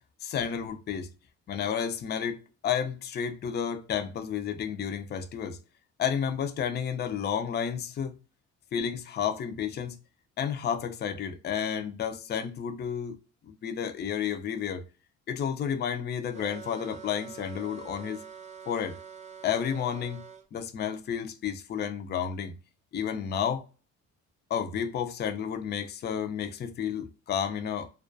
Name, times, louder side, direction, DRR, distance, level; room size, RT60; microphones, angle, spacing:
voice 1, 0.2-1.1 1.5-5.6 6.0-8.1 8.7-10.0 10.4-13.2 13.4-14.8 15.3-18.2 18.7-19.0 19.4-20.2 20.5-22.5 22.9-23.6 24.5-27.9, left 8 dB, 35° left, 0.4 m, -31 dB
sound 1, 16.3-20.4, right 7 dB, 25° right, 0.4 m, -45 dB
2.2 x 2.2 x 2.5 m
cardioid pair, 90°, 30 cm